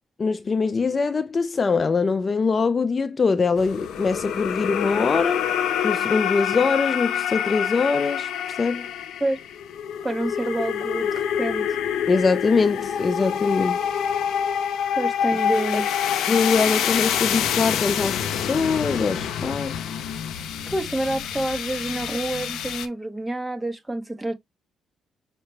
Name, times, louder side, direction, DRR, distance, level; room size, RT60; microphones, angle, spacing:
voice 1, 0.2-5.4 5.8-8.9 12.1-13.8 15.7-15.8 16.3-19.9, left 4 dB, 35° left, 0.3 m, -23 dB
sound 1, 3.6-22.9, left 9 dB, 80° left, 0.6 m, -26 dB
voice 2, 10.0-11.8 14.9-15.9 20.7-24.3, right 1 dB, 10° right, 1.0 m, -28 dB
5.7 x 2.2 x 3.1 m
cardioid pair, 90°, 0 cm